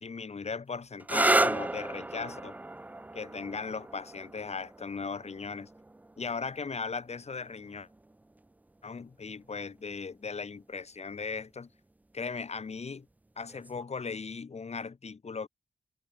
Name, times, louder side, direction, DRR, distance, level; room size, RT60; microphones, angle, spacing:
voice 1, 0.0-2.5 3.1-5.7 6.2-7.9 8.8-11.7 12.1-13.1 13.4-15.5, left 5 dB, 45° left, 2.3 m, -38 dB
sound 1, 1.0-8.4 9.4-10.0 13.5-13.8, right 2 dB, 10° right, 0.4 m, -33 dB
cardioid pair, 75°, 15 cm